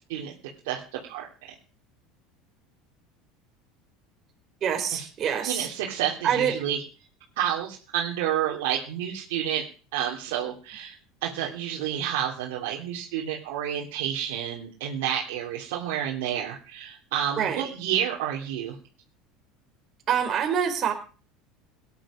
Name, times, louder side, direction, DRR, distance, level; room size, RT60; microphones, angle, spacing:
voice 1, 0.6-1.3 4.9-5.1 5.4-6.8 7.4-9.6 9.9-11.0 11.2-18.8, right 10 dB, 80° right, -2 dB, 3.2 m, -30 dB
voice 2, 4.6-5.7 6.2-6.5 17.4-17.6 20.1-20.9, right 8 dB, 40° right, 4 dB, 4.6 m, -25 dB
18.0 x 10.5 x 5.1 m, 0.38 s
supercardioid pair, 130°, 0 cm